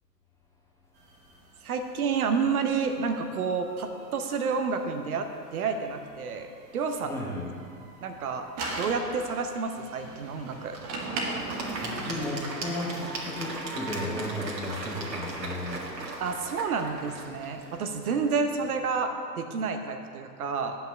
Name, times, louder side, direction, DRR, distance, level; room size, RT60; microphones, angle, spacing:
sound 1, 1.0-12.9 13.5-17.4 17.6-18.3, right 2 dB, 30° right, 1.6 m, -41 dB
voice 1, 1.6-7.2 8.0-8.4 8.8-10.8 16.2-20.8, right 5 dB, 60° right, 6 dB, 0.9 m, -30 dB
voice 2, 7.1-7.5 11.4-15.9, left 1 dB, 5° left, -4 dB, 1.2 m, -35 dB
Applause / Crowd, 10.0-19.1, right 2 dB, 85° right, 2.0 m, -38 dB
8.8 x 5.8 x 6.5 m, 2.2 s
figure-of-eight pair, 115°, 49 cm